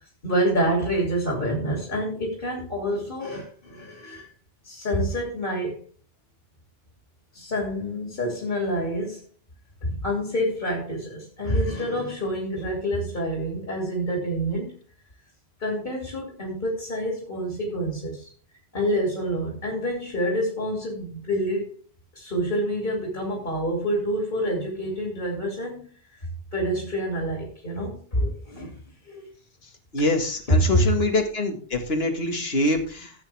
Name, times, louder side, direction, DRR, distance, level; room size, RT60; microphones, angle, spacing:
voice 1, 0.2-4.3 4.6-5.8 7.3-9.2 9.8-14.8 15.6-18.3 18.7-21.7 22.1-25.9 26.5-28.8 29.1-29.3 30.5-30.9, equal, 55° left, -1 dB, 3.1 m, -27 dB
voice 2, 29.9-33.1, left 2 dB, 75° left, 4 dB, 2.1 m, -24 dB
15.0 x 8.4 x 3.5 m, 0.42 s
omnidirectional pair, 1.0 m